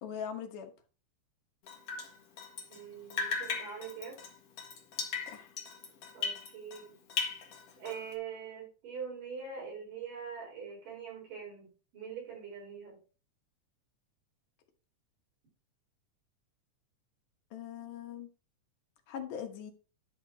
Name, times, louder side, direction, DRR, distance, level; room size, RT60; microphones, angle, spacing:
voice 1, 0.0-0.7 5.3-5.5 17.5-18.3 19.1-19.7, left 8 dB, 75° left, 2.7 m, -41 dB
Drip, 1.7-2.8 3.1-6.8 7.1-8.1, left 5 dB, 55° left, 2.5 m, -38 dB
voice 2, 2.7-4.2 6.1-6.9 7.8-13.0, right 6 dB, 80° right, 6.0 m, -43 dB
11.5 x 6.6 x 2.8 m
omnidirectional pair, 3.8 m